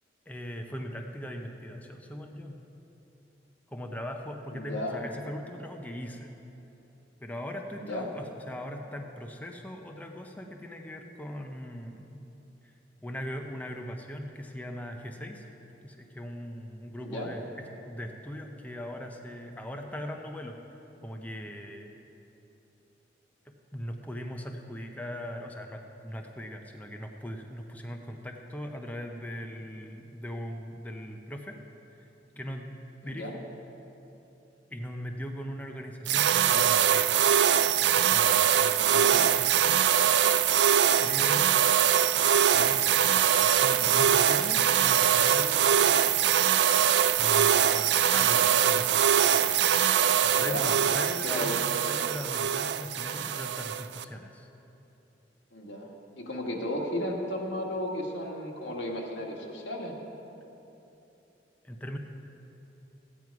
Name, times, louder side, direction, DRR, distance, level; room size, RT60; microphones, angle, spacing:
voice 1, 0.3-2.6 3.7-6.3 7.2-12.2 12.6-12.7 13.0-15.5 15.8-20.6 21.0-21.9 23.4-31.6 31.9-32.1 32.4-33.4 34.7-37.1 38.0-39.8 41.0-41.7 42.5-46.0 47.2-49.0 50.2-54.5 61.6-62.0, equal, 10° left, 3 dB, 0.6 m, -39 dB
voice 2, 4.5-5.1 7.8-8.1 17.0-17.3 33.0-33.3 38.8-39.3 43.7-43.9 50.3-50.7 51.2-52.1 55.5-55.9 56.2-59.9, left 1 dB, 85° left, -1 dB, 1.7 m, -34 dB
sound 1, 36.1-54.0, right 9 dB, 65° right, 0.4 m, -23 dB
14.5 x 9.2 x 4.7 m, 3.0 s
head